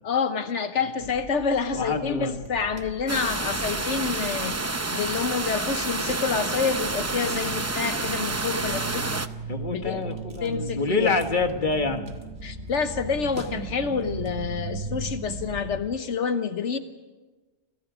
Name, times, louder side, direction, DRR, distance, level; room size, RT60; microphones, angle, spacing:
voice 1, 0.0-9.2 9.7-10.0 10.4-11.2 12.4-16.8, left 5 dB, 85° left, 8 dB, 1.4 m, -28 dB
sound 1, 1.0-15.8, right 3 dB, 75° right, 2.1 m, -38 dB
voice 2, 1.7-2.4 9.5-12.0, left 3 dB, 45° left, 6 dB, 1.8 m, -26 dB
sound 2, 3.1-9.3, right 2 dB, 15° right, 0.6 m, -29 dB
28.5 x 28.0 x 5.1 m, 1.2 s
omnidirectional pair, 1.2 m